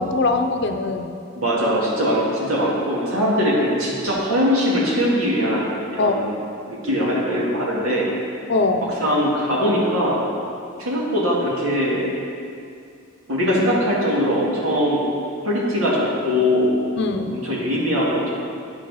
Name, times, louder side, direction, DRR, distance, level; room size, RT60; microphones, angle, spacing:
voice 1, 0.0-1.2 2.1-2.2 6.0-6.2 8.5-8.9 17.0-17.4, left 3 dB, 55° left, 6 dB, 0.6 m, -22 dB
voice 2, 1.3-6.3 6.7-8.1 9.0-10.2 10.8-12.1 13.3-15.1 15.4-16.7 17.3-18.4, equal, 90° right, -5 dB, 2.2 m, -21 dB
9.4 x 7.0 x 4.9 m, 2.4 s
head